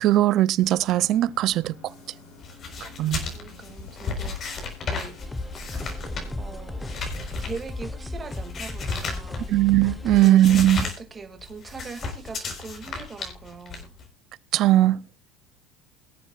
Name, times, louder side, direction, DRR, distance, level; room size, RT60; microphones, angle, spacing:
voice 1, 0.0-1.7 3.0-3.2 9.5-10.8 14.5-15.0, right 14 dB, 55° right, 0.5 m, -19 dB
sound 1, 0.6-7.0, left 3 dB, 65° left, 6.6 m, -49 dB
sound 2, 2.4-9.7 10.1-11.0 11.2-14.1, left 4 dB, 40° left, 4.1 m, -34 dB
voice 2, 3.3-5.1 6.4-6.9 7.5-9.5 10.2-13.9, right 4 dB, 25° right, 2.3 m, -41 dB
sound 3, 5.2-10.2, left 2 dB, 15° left, 0.9 m, -35 dB
22.5 x 8.0 x 2.4 m
supercardioid pair, 105°, 0 cm